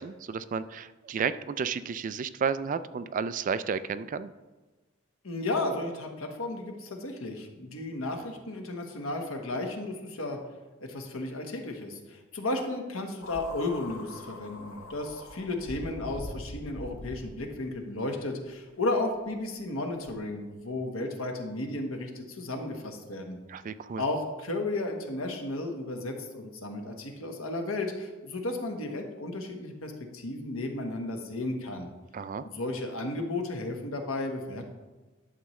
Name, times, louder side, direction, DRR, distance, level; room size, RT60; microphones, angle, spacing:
voice 1, 0.0-4.3 23.5-24.0 32.1-32.5, right 6 dB, 40° right, 13 dB, 0.3 m, -32 dB
voice 2, 5.2-10.4 10.8-23.4 24.0-31.9 32.4-34.6, left 2 dB, 90° left, 3 dB, 1.3 m, -34 dB
sound 1, 13.2-17.7 18.5-18.6 20.0-20.1, left 1 dB, 60° left, 0.8 m, -43 dB
11.0 x 7.0 x 3.2 m, 1.2 s
head